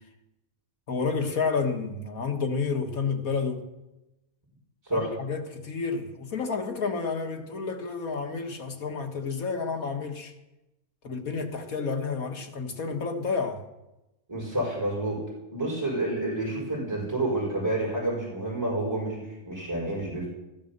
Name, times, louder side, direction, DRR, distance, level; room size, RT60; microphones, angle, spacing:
voice 1, 0.9-3.7 4.9-10.3 11.0-13.7, left 5 dB, 70° left, 2.1 m, -30 dB
voice 2, 14.3-15.2 15.5-20.3, right 1 dB, 15° right, 5.1 m, -29 dB
14.0 x 13.0 x 6.8 m
omnidirectional pair, 1.6 m